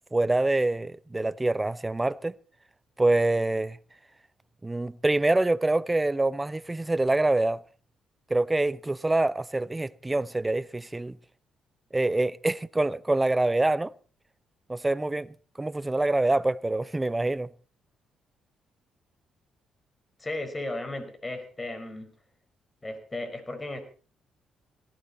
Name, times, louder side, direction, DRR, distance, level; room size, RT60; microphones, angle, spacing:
voice 1, 0.1-2.4 3.0-3.8 4.6-7.6 8.3-11.2 11.9-13.9 14.7-17.5, right 2 dB, 15° right, 0.7 m, -25 dB
voice 2, 20.2-22.1 22.8-23.8, left 2 dB, 20° left, 4.9 m, -35 dB
19.0 x 16.5 x 4.3 m
cardioid pair, 90°, 0 cm